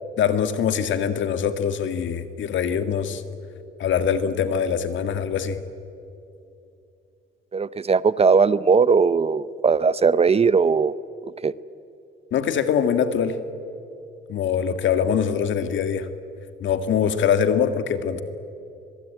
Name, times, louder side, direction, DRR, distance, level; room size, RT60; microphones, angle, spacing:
voice 1, 0.2-3.2 3.8-5.6 12.3-13.4 14.3-16.1 16.6-18.2, left 7 dB, 70° left, 9 dB, 1.8 m, -23 dB
voice 2, 7.5-10.9 11.4-11.5, right 5 dB, 30° right, 17 dB, 0.7 m, -19 dB
23.0 x 22.5 x 9.0 m, 2.7 s
cardioid pair, 90°, 20 cm